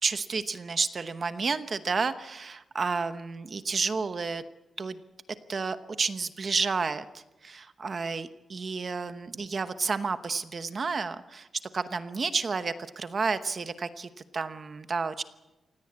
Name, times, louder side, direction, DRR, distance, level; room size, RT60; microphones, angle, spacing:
voice 1, 0.0-4.4 4.8-5.0 5.5-7.1 7.4-11.5 11.7-15.2, right 4 dB, 35° right, 11 dB, 1.0 m, -31 dB
26.5 x 17.5 x 8.6 m, 1.1 s
wide cardioid pair, 175°, 0 cm